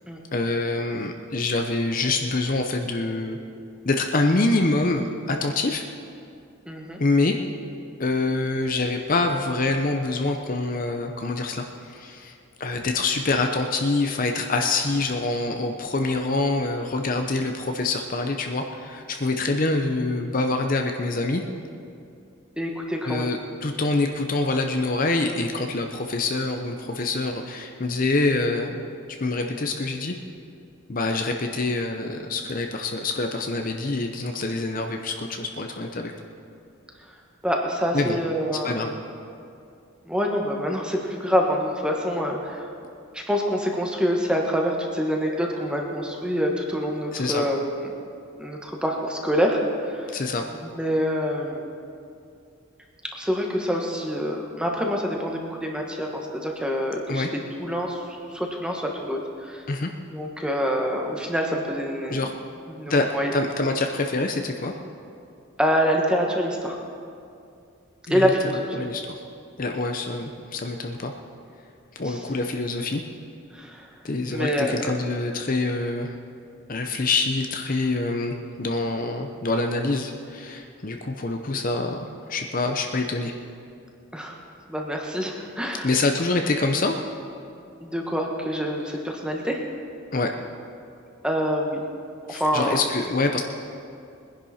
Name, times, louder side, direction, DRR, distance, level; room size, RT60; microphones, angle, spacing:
voice 1, 0.3-3.4 3.8-5.9 7.0-7.4 8.0-21.4 23.0-28.8 29.2-30.2 30.9-36.1 37.9-38.2 38.6-39.0 47.1-47.5 50.1-50.4 57.1-57.3 59.7-59.9 62.1-62.3 62.9-63.1 63.3-64.7 68.1-69.2 69.6-71.1 71.9-73.0 74.0-76.2 76.7-83.3 85.8-87.0 90.1-90.3 92.3-93.4, left 3 dB, 40° left, 4 dB, 0.7 m, -25 dB
voice 2, 6.7-7.0 22.6-23.3 37.4-38.8 40.0-42.7 43.1-47.9 48.4-50.2 50.6-51.6 53.1-57.3 57.6-59.6 60.1-62.2 62.7-63.3 65.6-66.8 68.1-68.7 72.0-72.3 73.5-73.9 74.3-74.9 84.1-84.4 84.7-85.9 87.8-89.6 91.2-91.8 92.3-92.8, equal, 5° right, 0 dB, 1.4 m, -26 dB
21.0 x 10.5 x 4.3 m, 2.5 s
head